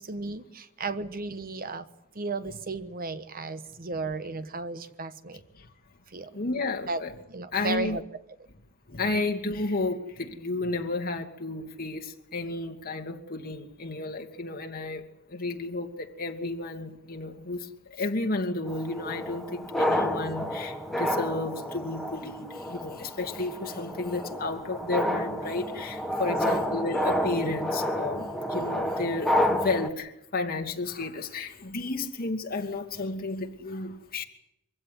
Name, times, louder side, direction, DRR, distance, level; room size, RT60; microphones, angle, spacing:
voice 1, 0.0-1.9 2.1-5.4 6.1-6.3 6.9-7.0 7.3-8.0 26.3-26.9, right 3 dB, 45° right, 1.3 m, -34 dB
voice 2, 6.3-7.1 7.5-8.0 8.9-15.0 15.3-34.2, left 3 dB, 45° left, 2.6 m, -32 dB
sound 1, 18.7-29.9, equal, ahead, 1.8 m, -30 dB
25.0 x 16.0 x 9.8 m
head